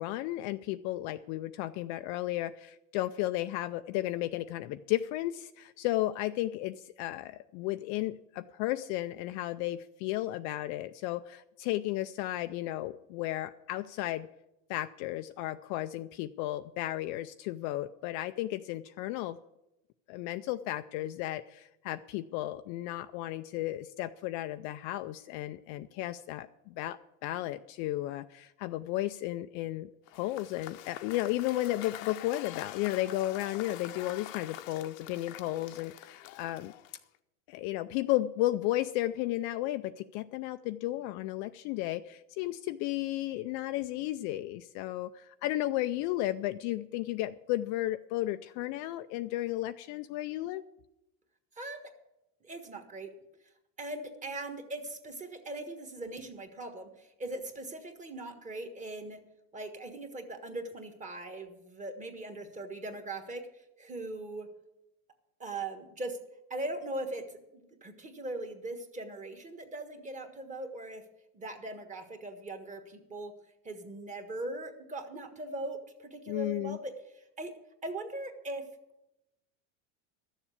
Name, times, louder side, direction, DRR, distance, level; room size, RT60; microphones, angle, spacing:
voice 1, 0.0-14.3 14.7-19.4 20.1-36.7 37.5-50.6 76.3-76.8, left 15 dB, 45° left, 10 dB, 0.4 m, -34 dB
Cheering / Applause / Crowd, 30.1-37.2, left 14 dB, 75° left, 0.9 m, -46 dB
voice 2, 51.5-51.9 52.4-53.1 53.8-59.2 59.5-64.5 65.4-66.2 66.5-71.0 71.3-73.3 73.6-77.5 77.8-78.7, right 2 dB, 20° right, 6 dB, 1.5 m, -40 dB
13.0 x 7.2 x 8.2 m, 0.91 s
supercardioid pair, 140°, 40 cm